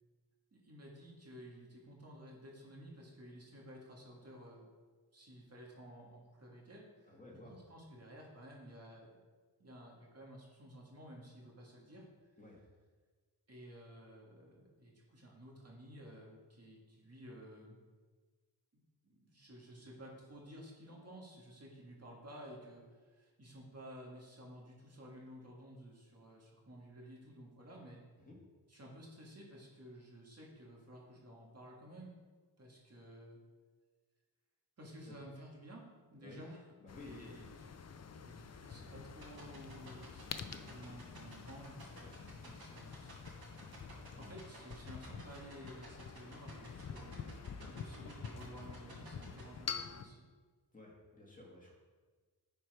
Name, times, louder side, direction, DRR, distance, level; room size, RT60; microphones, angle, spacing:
voice 1, 0.5-4.7 5.1-9.2 9.6-12.1 13.5-17.8 19.0-28.0 28.7-32.2 32.6-33.4 34.8-36.7 37.0-43.6 44.2-47.3 47.6-50.2, equal, 40° right, -2 dB, 2.0 m, -53 dB
voice 2, 7.1-7.6 12.4-12.6 28.2-28.4 35.1-35.2 36.2-36.4 36.8-37.3 44.2-44.3 50.7-51.7, left 2 dB, 20° left, -3 dB, 1.9 m, -54 dB
sound 1, 36.9-50.0, left 6 dB, 40° left, 0.5 m, -48 dB
sound 2, 39.2-49.4, right 4 dB, 65° right, 2.1 m, -54 dB
10.0 x 4.6 x 4.9 m, 1.4 s
wide cardioid pair, 110°, 40 cm